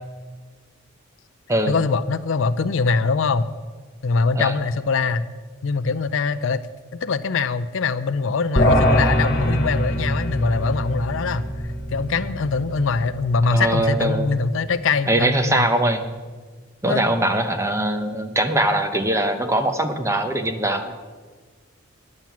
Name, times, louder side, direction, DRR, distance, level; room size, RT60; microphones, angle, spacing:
voice 1, 1.7-3.5 4.0-5.3 5.6-6.7 7.0-11.5 11.9-15.7 16.9-17.0, left 4 dB, 65° left, 13 dB, 0.5 m, -23 dB
sound 1, 8.6-14.1, equal, 45° left, 1.8 m, -23 dB
voice 2, 13.5-14.3 15.1-16.0 16.8-20.9, right 1 dB, 15° right, 6 dB, 0.8 m, -21 dB
10.5 x 7.5 x 7.2 m, 1.4 s
head